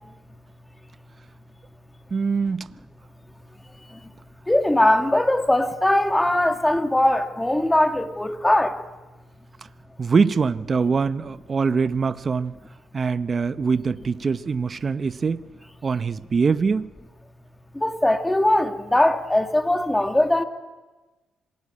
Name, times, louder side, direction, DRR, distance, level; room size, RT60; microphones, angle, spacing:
voice 1, 2.1-2.7 10.0-12.6 12.9-15.4 15.8-16.9, right 5 dB, 40° right, 0.8 m, -23 dB
voice 2, 4.5-8.7 17.8-20.4, left 1 dB, 10° left, 2.1 m, -20 dB
27.0 x 19.0 x 8.6 m
cardioid pair, 90°, 0 cm